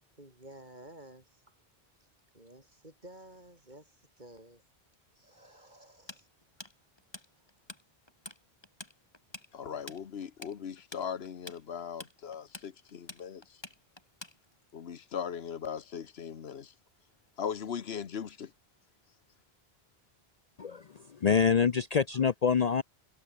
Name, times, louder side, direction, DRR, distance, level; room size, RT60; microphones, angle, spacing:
voice 1, 0.2-1.5 2.0-2.1 2.3-4.6 5.1-6.3 6.6-6.7, right 1 dB, 45° right, 6.4 m, -53 dB
Tools, 6.1-7.8 8.1-8.4 8.6-14.7, left 2 dB, 25° left, 2.2 m, -46 dB
voice 2, 9.5-13.4 14.7-16.7 17.4-18.5, left 7 dB, 90° left, 1.3 m, -39 dB
voice 3, 21.1-22.8, left 6 dB, 45° left, 0.7 m, -26 dB
omnidirectional pair, 1.0 m